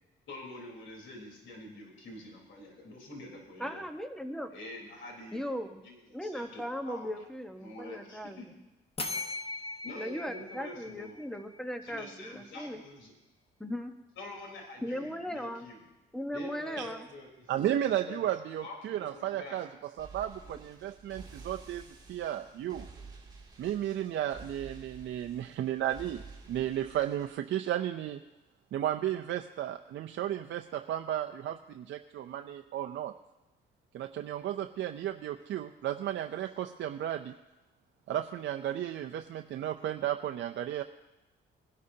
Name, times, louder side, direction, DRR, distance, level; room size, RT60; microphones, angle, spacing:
voice 1, 0.3-3.9 4.5-5.4 5.8-7.1 7.6-8.4 9.8-11.2 11.8-13.1 14.2-15.8 16.3-17.8 18.1-18.3 18.6-19.6 20.4-20.6, left 1 dB, 70° left, 0 dB, 4.0 m, -46 dB
voice 2, 3.6-4.5 5.3-5.8 6.1-8.4 9.9-12.8 13.6-14.0 14.8-15.7 16.1-17.1, equal, ahead, 7 dB, 1.2 m, -38 dB
sound 1, 9.0-11.7, left 3 dB, 30° left, 1.3 m, -39 dB
voice 3, 17.5-19.7 20.0-21.8 22.1-22.9 23.6-28.2 28.7-33.1 33.9-37.3 38.1-40.8, right 11 dB, 65° right, 4 dB, 0.6 m, -34 dB
sound 2, 20.0-27.4, right 4 dB, 20° right, 2.6 m, -51 dB
20.5 x 11.5 x 2.8 m, 1.0 s
cardioid pair, 90°, 20 cm